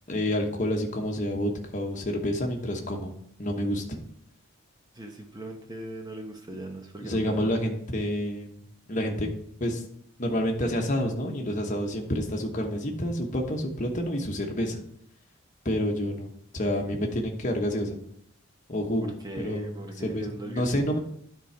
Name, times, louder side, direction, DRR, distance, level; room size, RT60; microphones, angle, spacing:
voice 1, 0.1-3.1 3.4-4.0 7.0-8.5 8.9-9.3 9.6-9.8 10.2-14.8 15.6-18.0 18.7-19.7 20.0-21.0, equal, 35° left, 1 dB, 1.1 m, -28 dB
voice 2, 4.9-7.5 19.0-21.0, right 1 dB, 20° right, 3 dB, 0.9 m, -39 dB
10.0 x 3.9 x 4.6 m, 0.70 s
head